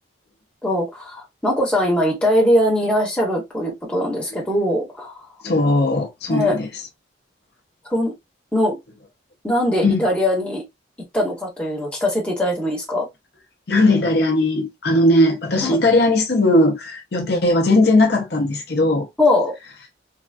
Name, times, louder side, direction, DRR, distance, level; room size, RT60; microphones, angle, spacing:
voice 1, 0.6-5.1 6.3-6.6 7.9-8.1 8.5-8.8 9.4-10.6 11.1-13.1 15.6-15.8 19.2-19.5, left 1 dB, 5° left, 1.1 m, -21 dB
voice 2, 5.4-6.7 9.8-10.1 13.7-19.1, left 1 dB, 55° left, 0.6 m, -18 dB
3.3 x 2.3 x 2.4 m
head